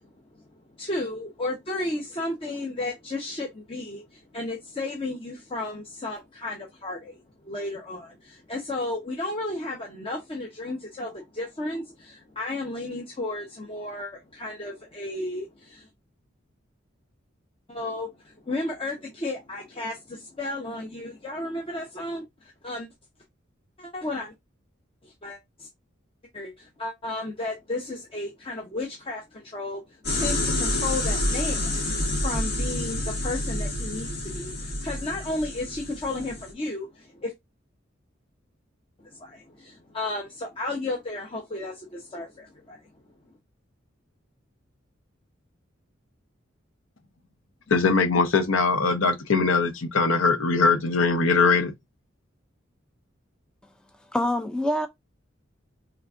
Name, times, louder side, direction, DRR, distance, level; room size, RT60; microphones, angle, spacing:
voice 1, 0.8-7.2 7.4-15.9 17.7-22.2 22.6-22.9 23.8-24.3 25.0-25.7 26.3-29.8 30.1-31.8 32.2-37.3 39.0-42.8, left 2 dB, 30° left, 0.8 m, -33 dB
sound 1, 30.0-36.5, left 1 dB, 55° left, 2.1 m, -28 dB
voice 2, 47.7-51.7, left 4 dB, 85° left, 0.7 m, -21 dB
voice 3, 54.0-54.9, left 1 dB, 5° left, 0.3 m, -26 dB
4.5 x 3.3 x 2.5 m
head